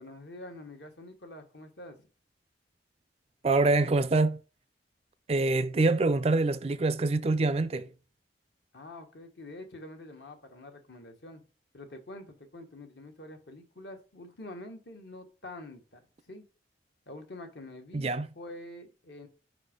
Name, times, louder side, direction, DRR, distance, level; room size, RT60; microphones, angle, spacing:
voice 1, 0.0-2.0 8.7-11.4 11.7-16.0 16.3-16.4 17.1-19.3, left 1 dB, 65° left, 1.3 m, -46 dB
voice 2, 3.4-4.4 5.3-7.9 17.9-18.3, right 3 dB, 35° right, 0.4 m, -25 dB
5.2 x 4.2 x 5.1 m
head